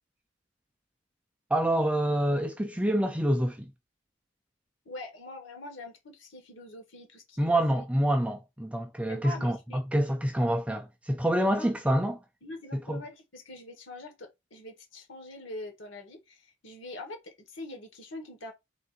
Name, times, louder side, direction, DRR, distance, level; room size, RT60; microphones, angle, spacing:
voice 1, 1.5-3.7 7.4-12.2 12.7-13.0, right 1 dB, 5° right, 0.4 m, -27 dB
voice 2, 4.8-7.8 9.1-9.9 11.4-11.8 12.4-18.5, left 1 dB, 60° left, 1.4 m, -44 dB
3.7 x 2.6 x 4.0 m
head